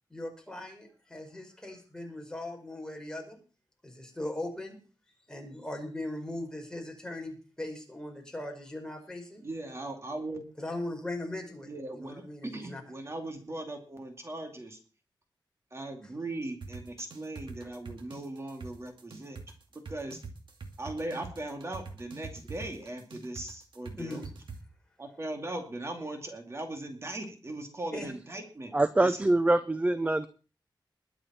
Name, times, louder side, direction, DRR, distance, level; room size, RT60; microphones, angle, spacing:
voice 1, 0.1-3.4 3.8-4.8 5.3-9.4 10.6-11.7 11.9-12.8 17.6-17.7 24.0-24.3 27.9-28.1, left 1 dB, 10° left, 1 dB, 4.7 m, -39 dB
voice 2, 9.4-10.4 11.6-12.2 12.5-14.8 15.7-19.4 19.9-20.2 20.8-24.2 25.0-28.7 29.0-29.2, right 2 dB, 30° right, 4 dB, 2.6 m, -39 dB
sound 1, 16.6-24.6, right 4 dB, 75° right, 2.3 m, -43 dB
voice 3, 28.7-30.3, right 2 dB, 15° right, 13 dB, 0.6 m, -24 dB
21.5 x 8.8 x 4.4 m, 0.37 s
wide cardioid pair, 125°, 8 cm